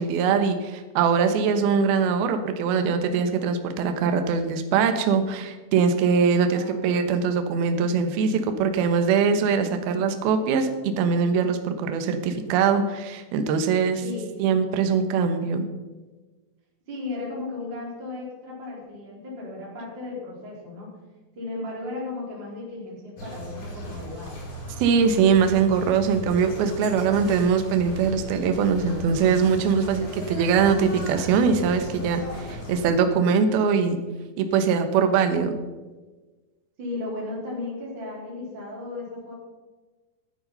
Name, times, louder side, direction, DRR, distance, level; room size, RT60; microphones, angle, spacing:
voice 1, 0.0-14.0 14.4-15.7 24.8-34.0 34.4-35.5, right 6 dB, 70° right, 7 dB, 2.8 m, -22 dB
voice 2, 6.4-7.0 14.0-14.4 16.9-20.9 21.4-24.4 36.8-39.3, left 2 dB, 25° right, -4 dB, 4.3 m, -35 dB
sound 1, 23.2-32.8, equal, 35° left, 5.5 m, -36 dB
14.0 x 10.0 x 5.5 m, 1.2 s
omnidirectional pair, 5.0 m